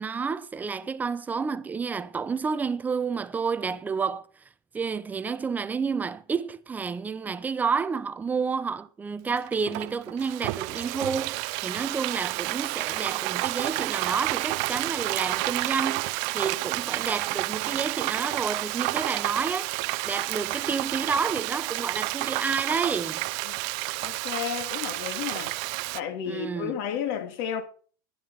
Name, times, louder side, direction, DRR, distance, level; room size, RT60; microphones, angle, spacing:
voice 1, 0.0-4.2 4.7-19.7 20.0-23.3 26.2-26.8, right 5 dB, 15° right, 0.8 m, -30 dB
Frying (food), 9.3-26.0, right 23 dB, 45° right, 0.6 m, -30 dB
voice 2, 24.0-25.5 25.9-27.6, left 8 dB, 50° left, 3.0 m, -32 dB
12.5 x 10.5 x 5.7 m
supercardioid pair, 135°, 13 cm